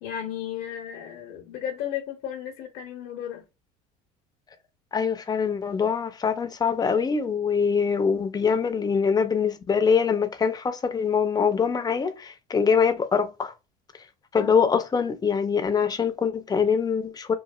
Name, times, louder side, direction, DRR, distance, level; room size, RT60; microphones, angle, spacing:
voice 1, 0.0-3.4 14.4-14.5, left 10 dB, 70° left, 0.8 m, -34 dB
voice 2, 4.9-13.5 14.3-17.3, left 6 dB, 20° left, 0.5 m, -24 dB
3.0 x 2.3 x 2.3 m
supercardioid pair, 95°, 19 cm